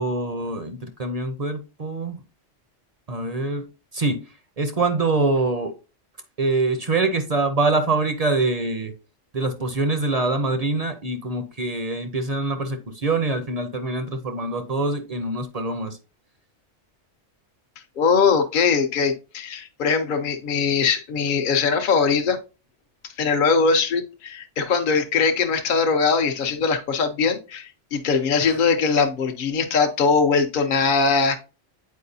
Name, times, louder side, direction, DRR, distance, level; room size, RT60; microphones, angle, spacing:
voice 1, 0.0-2.2 3.1-3.7 3.9-4.2 4.6-5.7 6.4-8.9 9.3-16.0, right 3 dB, 40° right, 0.6 m, -24 dB
voice 2, 18.0-22.4 23.2-31.4, left 5 dB, 50° left, 0.8 m, -21 dB
8.4 x 4.5 x 2.7 m
omnidirectional pair, 1.2 m